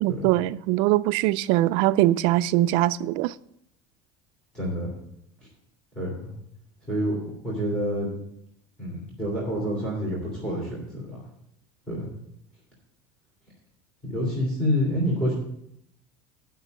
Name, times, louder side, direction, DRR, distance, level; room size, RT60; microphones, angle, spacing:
voice 1, 0.0-3.3, right 15 dB, 55° right, 0.4 m, -22 dB
voice 2, 4.5-4.9 5.9-6.3 6.9-7.2 7.4-8.1 8.8-11.2 11.9-12.1 14.0-15.3, equal, 5° left, 3.1 m, -27 dB
11.0 x 5.9 x 6.5 m
cardioid pair, 175°, 11 cm